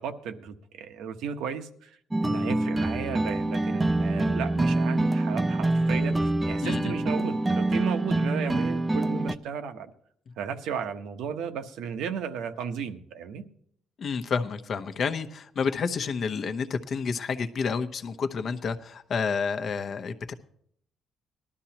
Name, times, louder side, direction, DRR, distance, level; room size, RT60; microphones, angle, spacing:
voice 1, 0.0-2.0 2.2-9.9 10.4-13.4, right 7 dB, 85° right, 7 dB, 1.1 m, -34 dB
sound 1, 2.1-9.3, right 2 dB, 10° right, 0.4 m, -25 dB
voice 2, 6.6-6.9 14.0-20.3, left 5 dB, 45° left, 8 dB, 0.8 m, -30 dB
19.5 x 12.0 x 2.9 m, 0.66 s
cardioid pair, 140°, 0 cm